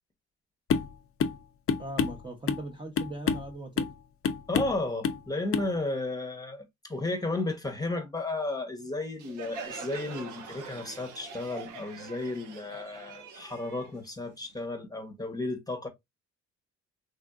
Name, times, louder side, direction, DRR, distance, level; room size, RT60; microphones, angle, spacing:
sound 1, 0.7-0.9 1.2-1.4 1.7-2.7 3.0-3.5 3.8-4.0 4.2-4.8 5.0-5.2 5.5-5.7, left 6 dB, 50° left, 0.6 m, -28 dB
voice 1, 1.8-3.9, right 1 dB, 15° right, 0.8 m, -39 dB
voice 2, 4.5-15.9, left 2 dB, 10° left, 0.9 m, -33 dB
Crowd, 9.2-14.6, right 5 dB, 85° right, 0.9 m, -44 dB
3.6 x 2.6 x 2.3 m
cardioid pair, 90°, 30 cm